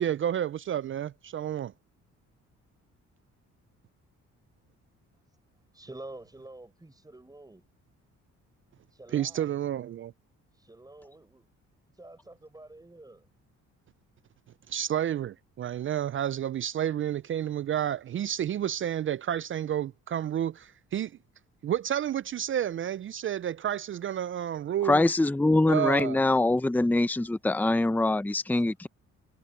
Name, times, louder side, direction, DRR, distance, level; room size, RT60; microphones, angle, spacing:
voice 1, 0.0-1.7 9.1-10.1 14.7-21.1 21.6-25.0 25.7-26.2, right 10 dB, 45° right, 0.4 m, -30 dB
voice 2, 5.7-7.6 8.9-9.5 10.5-11.5 11.9-13.3 28.5-28.6, right 2 dB, 10° right, 5.5 m, -48 dB
voice 3, 24.8-28.9, left 2 dB, 5° left, 0.7 m, -24 dB
cardioid pair, 90°, 30 cm